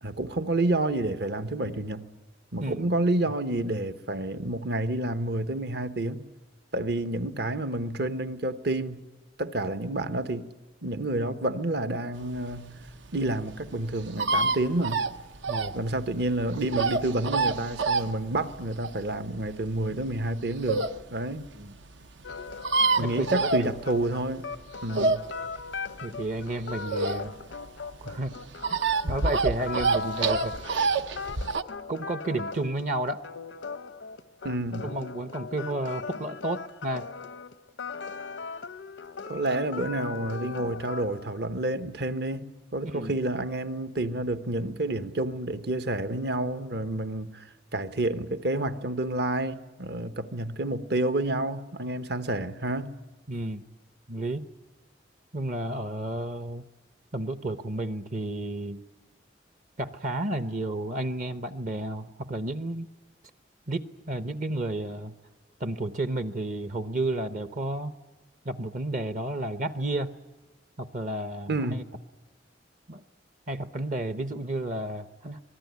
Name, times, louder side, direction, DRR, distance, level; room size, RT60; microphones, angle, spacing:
voice 1, 0.0-2.0 2.5-6.3 6.7-9.0 9.4-10.5 10.8-12.8 13.1-15.0 15.7-21.5 23.0-24.5 24.8-25.3 34.4-34.9 39.3-47.5 47.7-53.0 71.5-71.8, right 1 dB, 60° right, 1.0 m, -29 dB
sound 1, 12.4-21.0 21.5-21.6 21.8-21.9 22.0-22.1 22.3-24.2 24.5-27.5 27.9-31.6, right 3 dB, 80° right, 0.9 m, -27 dB
sound 2, 22.2-41.4, left 5 dB, 90° left, 0.7 m, -39 dB
voice 2, 23.0-23.7 25.0-25.2 26.0-27.4 28.0-28.3 28.7-28.8 29.0-30.9 31.9-33.2 34.8-37.1 42.9-43.1 53.3-53.6 54.1-54.5 55.3-56.7 57.1-58.8 59.8-62.9 63.7-65.1 65.6-67.9 68.4-70.2 70.8-71.8 72.9-73.0 73.5-75.4, right 1 dB, 45° right, 0.7 m, -32 dB
25.5 x 20.0 x 9.5 m
head